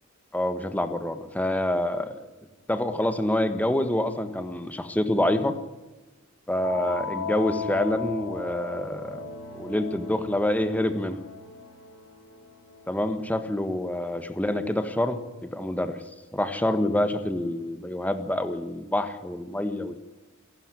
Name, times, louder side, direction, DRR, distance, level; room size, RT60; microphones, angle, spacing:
voice 1, 0.3-2.2 2.7-5.6 6.5-9.2 9.5-11.2 12.9-16.0 16.3-20.0, left 1 dB, 5° left, 8 dB, 1.4 m, -27 dB
sound 1, 6.6-13.1, left 5 dB, 85° left, 5.5 m, -37 dB
27.5 x 12.5 x 9.8 m, 1.1 s
head